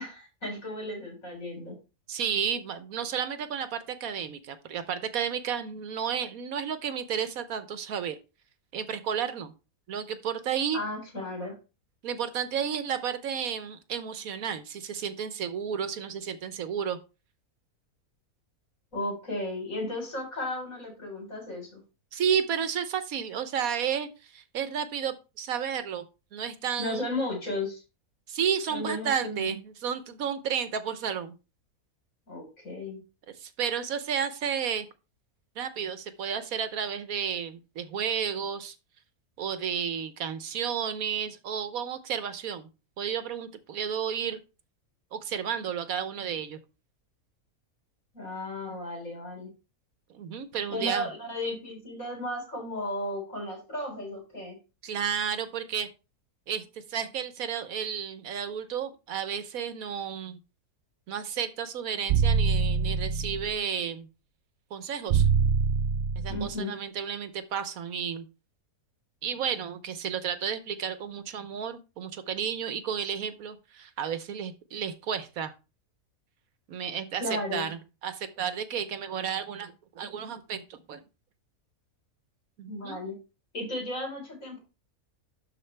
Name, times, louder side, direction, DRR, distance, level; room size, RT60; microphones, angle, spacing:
voice 1, 0.0-1.8 10.7-11.5 18.9-21.8 26.8-27.8 28.7-29.5 32.3-33.0 48.1-49.5 50.7-54.6 66.3-66.7 77.2-77.7 82.7-83.2 83.5-84.6, left 1 dB, 60° left, 0 dB, 4.7 m, -34 dB
voice 2, 2.1-8.2 8.7-9.5 9.9-10.8 12.0-17.0 22.1-26.0 26.3-27.2 28.3-31.4 33.3-34.9 35.6-38.8 39.4-42.7 43.0-44.4 45.1-46.6 50.1-51.1 54.8-55.9 56.5-60.4 61.1-64.1 64.7-65.3 66.2-68.3 69.2-75.5 76.7-81.0 82.6-83.0, right 8 dB, 70° right, 11 dB, 1.2 m, -32 dB
sound 1, 62.1-63.5 65.1-66.5, right 5 dB, 90° right, 0.5 m, -24 dB
12.0 x 4.5 x 3.3 m, 0.30 s
omnidirectional pair, 1.6 m